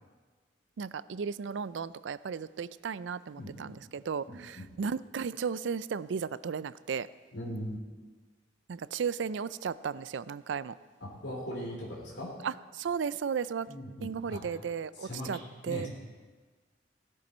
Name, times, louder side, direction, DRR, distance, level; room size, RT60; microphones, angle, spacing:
voice 1, 0.8-7.1 8.7-10.7 12.4-13.7 14.0-15.4 15.6-15.9, right 6 dB, 85° right, 17 dB, 0.4 m, -35 dB
voice 2, 3.4-3.8 4.3-4.7 7.3-7.8 11.0-12.3 13.7-14.4 14.9-15.4 15.7-15.9, equal, 75° left, -3 dB, 3.3 m, -39 dB
16.5 x 12.0 x 4.3 m, 1.4 s
head